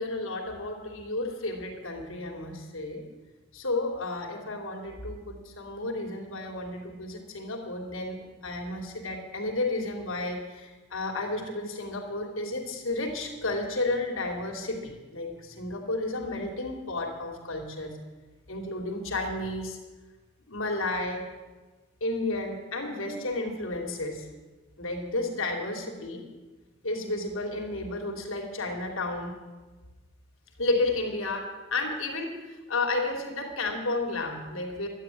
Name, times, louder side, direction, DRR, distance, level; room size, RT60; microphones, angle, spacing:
voice 1, 0.0-3.0 3.5-18.0 18.5-19.8 20.5-21.2 22.0-24.3 24.8-26.2 26.8-29.3 30.6-34.9, left 2 dB, 75° left, 1 dB, 3.0 m, -32 dB
12.5 x 9.1 x 9.8 m, 1.3 s
head